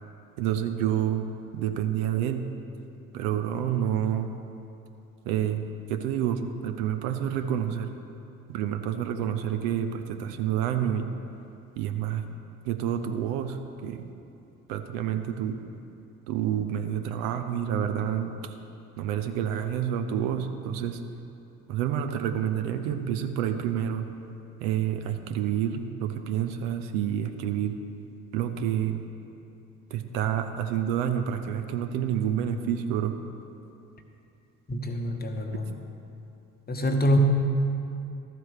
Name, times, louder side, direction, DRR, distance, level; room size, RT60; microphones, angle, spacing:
voice 1, 0.4-2.4 3.1-4.3 5.3-7.9 8.5-11.1 11.8-12.3 12.7-14.0 14.7-15.6 16.3-18.4 19.0-21.0 21.7-24.1 24.6-27.7 28.3-29.0 29.9-33.2, right 9 dB, 60° right, 7 dB, 0.8 m, -28 dB
voice 2, 34.7-35.7 36.7-37.2, left 1 dB, 20° left, 4 dB, 1.0 m, -26 dB
13.0 x 4.5 x 6.4 m, 2.7 s
figure-of-eight pair, 55°, 45 cm